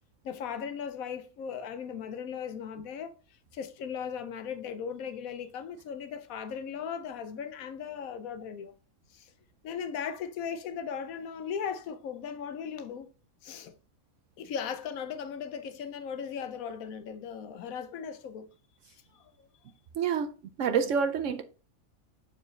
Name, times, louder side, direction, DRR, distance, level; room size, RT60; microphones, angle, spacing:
voice 1, 0.2-3.1 3.5-8.7 9.1-9.3 9.6-13.1 13.4-13.7 14.4-18.5 18.9-19.5, left 7 dB, 75° left, 1.1 m, -37 dB
voice 2, 19.9-20.3 20.6-21.4, right 6 dB, 65° right, 1.0 m, -27 dB
6.6 x 4.6 x 3.2 m
omnidirectional pair, 1.5 m